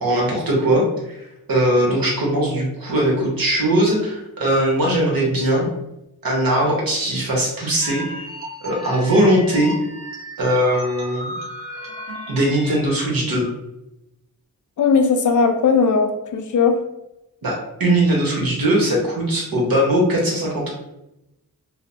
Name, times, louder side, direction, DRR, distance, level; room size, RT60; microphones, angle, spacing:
voice 1, 0.0-1.2 1.5-5.7 6.2-8.0 8.6-9.7 10.4-11.3 12.3-13.5 17.4-20.7, right 1 dB, 70° right, -3 dB, 1.1 m, -20 dB
sound 1, 7.8-12.9, equal, 35° right, 1.3 m, -34 dB
voice 2, 14.8-16.8, left 5 dB, 55° left, 6 dB, 0.4 m, -17 dB
3.0 x 2.0 x 2.6 m, 0.90 s
cardioid pair, 45°, 36 cm